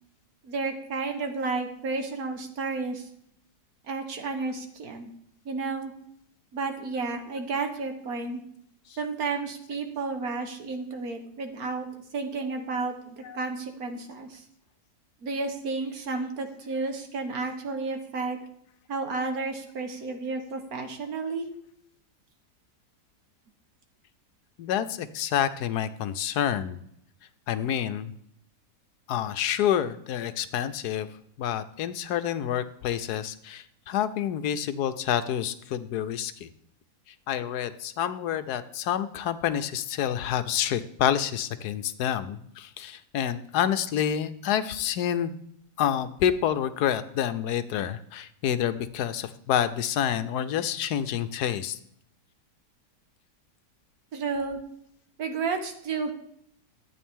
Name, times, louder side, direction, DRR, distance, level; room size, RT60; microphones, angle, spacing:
voice 1, 0.4-3.1 3.9-5.1 5.4-5.9 6.5-8.4 9.0-11.9 12.1-14.4 15.2-18.4 18.9-21.5 54.1-54.6 55.2-56.1, right 4 dB, 60° right, 5 dB, 1.6 m, -32 dB
voice 2, 24.6-26.8 27.5-28.1 29.1-31.1 31.4-36.5 37.3-45.3 45.8-51.8, left 10 dB, 75° left, 12 dB, 1.1 m, -28 dB
12.5 x 8.6 x 3.6 m, 0.70 s
omnidirectional pair, 1.8 m